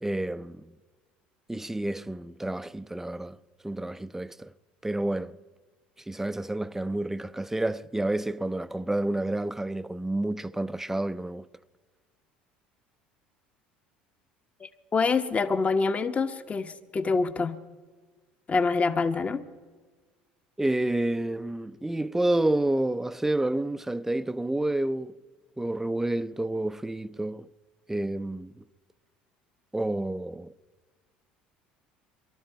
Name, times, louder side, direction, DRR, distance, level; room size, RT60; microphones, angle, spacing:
voice 1, 0.0-0.7 1.5-3.4 3.6-4.5 4.8-5.4 6.1-11.5 20.6-25.2 25.6-27.5 27.9-28.6 29.7-30.5, right 1 dB, 10° right, 0.5 m, -29 dB
voice 2, 14.6-17.6 18.5-19.4, left 4 dB, 30° left, 1.0 m, -26 dB
23.0 x 12.5 x 4.6 m
hypercardioid pair, 75°, 5 cm